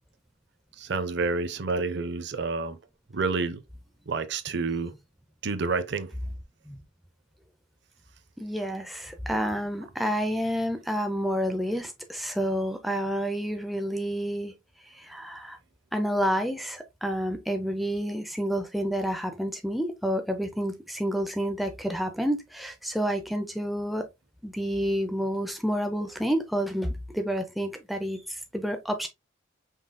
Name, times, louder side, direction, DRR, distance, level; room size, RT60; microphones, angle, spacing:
voice 1, 0.8-2.8 3.1-3.6 4.1-4.9 5.4-6.1, right 4 dB, 55° right, 0.6 m, -29 dB
voice 2, 8.4-14.5 14.9-15.6 15.9-24.1 24.4-29.1, equal, ahead, 0.5 m, -29 dB
5.4 x 3.8 x 2.2 m
head